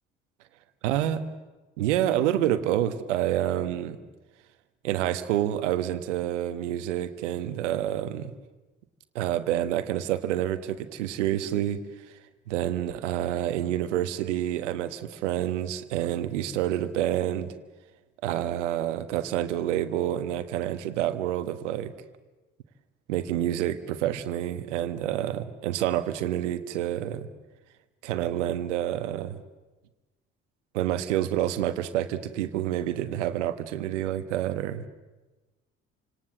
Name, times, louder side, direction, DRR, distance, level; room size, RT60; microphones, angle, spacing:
voice 1, 0.8-1.2 1.8-4.0 4.8-8.3 9.1-11.8 12.1-12.2 12.5-17.5 18.2-21.9 23.1-27.3 28.0-29.4 30.7-34.9, right 12 dB, 75° right, 12 dB, 1.4 m, -28 dB
29.0 x 26.5 x 7.7 m, 1.2 s
figure-of-eight pair, 50°, 36 cm